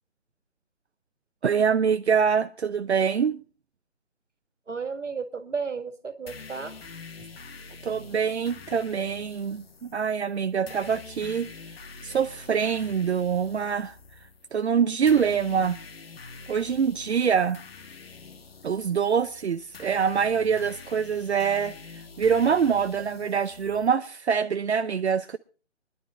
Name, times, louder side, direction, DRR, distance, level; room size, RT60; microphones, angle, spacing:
voice 1, 1.4-3.4 7.8-11.5 12.0-13.9 14.5-15.8 16.5-17.6 18.6-21.7 22.2-25.4, right 7 dB, 65° right, 0.7 m, -25 dB
voice 2, 4.7-6.8, right 5 dB, 80° right, 2.0 m, -33 dB
sound 1, 6.3-23.9, left 4 dB, 55° left, 1.4 m, -46 dB
24.5 x 11.5 x 2.5 m
figure-of-eight pair, 160°, 36 cm